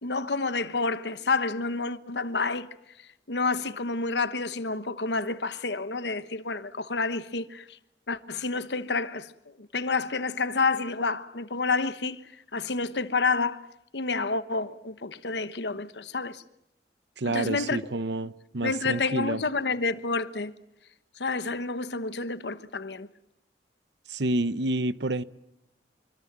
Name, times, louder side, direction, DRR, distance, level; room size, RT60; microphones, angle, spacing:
voice 1, 0.0-2.7 3.3-7.8 8.1-9.3 9.6-12.2 12.5-13.7 13.9-16.4 17.3-17.9 18.6-20.5 21.2-23.1, left 4 dB, 75° left, 1.2 m, -29 dB
voice 2, 17.2-19.4 24.1-25.2, right 2 dB, 80° right, 1.0 m, -29 dB
25.5 x 24.5 x 7.5 m
head